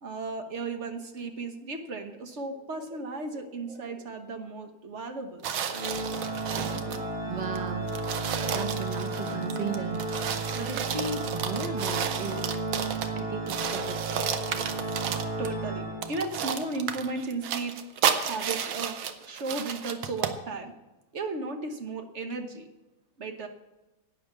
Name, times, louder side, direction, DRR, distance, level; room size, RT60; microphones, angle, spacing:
voice 1, 0.0-5.5 15.4-17.8 18.2-20.7 21.1-22.7 23.2-23.5, right 3 dB, 45° right, 6 dB, 1.1 m, -35 dB
voice 2, 3.3-3.9 6.5-7.9 8.4-10.1 10.5-12.5 13.1-14.3, right 4 dB, 90° right, 5 dB, 0.3 m, -36 dB
sound 1, 5.4-7.1 7.6-7.7 7.9-13.2 13.5-15.6 16.0-20.4, right 8 dB, 70° right, 1.6 m, -32 dB
Organ, 5.7-16.5, right 2 dB, 25° right, 1.9 m, -33 dB
11.0 x 9.1 x 7.0 m, 1.0 s
omnidirectional pair, 2.3 m